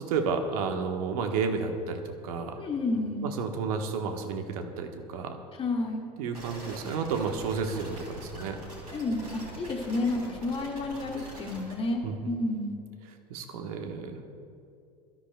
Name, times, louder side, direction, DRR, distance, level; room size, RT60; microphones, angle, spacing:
voice 1, 0.0-2.6 3.2-5.4 6.2-8.6 12.0-12.3 13.3-14.2, right 5 dB, 60° right, 5 dB, 1.3 m, -31 dB
voice 2, 2.6-3.3 5.6-6.0 8.9-12.7, left 2 dB, 25° left, 1 dB, 2.1 m, -30 dB
sound 1, 6.3-11.7, right 1 dB, 85° right, 3.4 m, -43 dB
23.0 x 13.5 x 2.3 m, 2.5 s
figure-of-eight pair, 75°, 21 cm